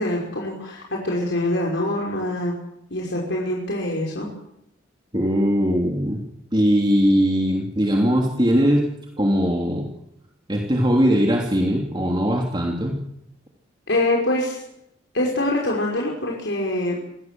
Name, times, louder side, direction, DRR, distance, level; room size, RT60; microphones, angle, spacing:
voice 1, 0.0-2.5 2.9-4.3 13.9-14.6 15.1-17.0, left 1 dB, 70° left, -1 dB, 5.9 m, -24 dB
voice 2, 5.1-6.2 6.5-8.9 9.2-9.9 10.5-13.0, equal, 25° right, 0 dB, 3.2 m, -20 dB
25.0 x 18.5 x 7.8 m, 0.80 s
head